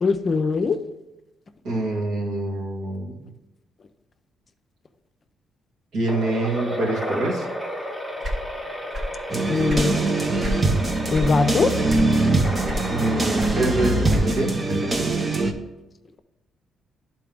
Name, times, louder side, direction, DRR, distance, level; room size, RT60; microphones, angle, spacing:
voice 1, 0.0-0.8 9.5-10.0 11.1-11.7, left 4 dB, 40° left, 9 dB, 0.5 m, -21 dB
voice 2, 1.6-3.2 5.9-7.5 12.9-15.0, right 2 dB, 80° right, -2 dB, 2.2 m, -26 dB
sound 1, 6.1-14.8, equal, 10° right, 1.1 m, -33 dB
sound 2, 8.2-9.2 9.5-10.7 11.1-11.4 11.9-12.3 12.6-14.5, left 1 dB, 50° right, 1.3 m, -29 dB
sound 3, 9.3-15.5, right 2 dB, 30° right, 0.7 m, -22 dB
11.0 x 4.2 x 3.5 m, 1.0 s
cardioid pair, 90°, 0 cm